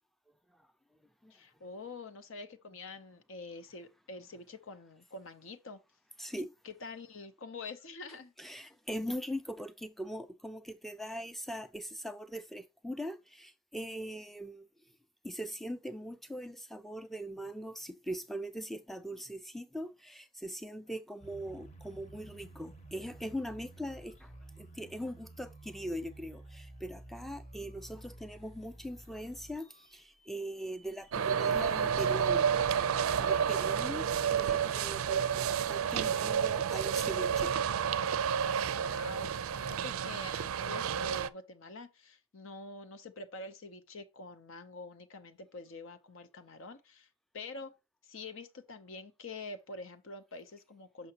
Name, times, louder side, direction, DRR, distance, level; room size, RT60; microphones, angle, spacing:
voice 1, 1.3-5.8 6.6-8.3 38.8-47.1 47.3-47.7 48.0-51.1, left 3 dB, 65° left, 0.7 m, -46 dB
voice 2, 6.2-6.5 8.4-14.7 15.2-32.5 32.8-32.9 33.2-34.0 34.3-37.5, equal, ahead, 0.4 m, -41 dB
sound 1, 21.2-39.7, right 2 dB, 35° left, 0.9 m, -53 dB
sound 2, 31.1-41.3, right 7 dB, 80° right, 0.4 m, -30 dB
6.8 x 5.6 x 2.8 m
head